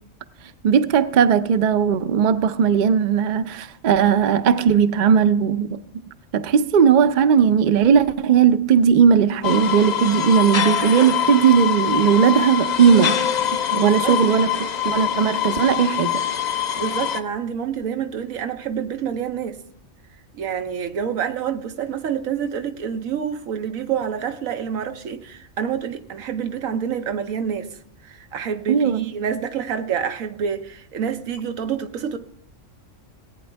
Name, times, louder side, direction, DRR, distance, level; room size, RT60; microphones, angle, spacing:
voice 1, 0.6-5.8 6.3-13.2 13.7-16.2 28.7-29.1, right 7 dB, 50° right, 0.5 m, -17 dB
sound 1, 9.4-17.2, left 9 dB, 45° left, 0.6 m, -24 dB
voice 2, 13.7-14.2 16.7-19.6 20.3-27.7 28.0-32.2, right 8 dB, 85° right, 1.2 m, -27 dB
18.0 x 8.9 x 3.4 m
omnidirectional pair, 1.4 m